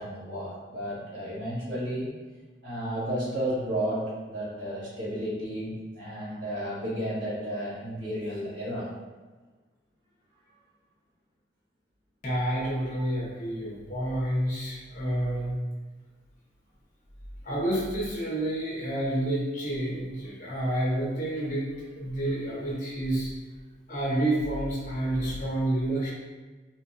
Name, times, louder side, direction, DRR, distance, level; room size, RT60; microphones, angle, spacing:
voice 1, 0.0-2.1 2.6-8.9, equal, 90° right, -8 dB, 1.4 m, -32 dB
voice 2, 12.2-15.5 17.4-21.7 21.9-23.3 23.9-26.1, right 1 dB, 45° left, -6 dB, 1.1 m, -29 dB
4.4 x 2.3 x 2.6 m, 1.3 s
head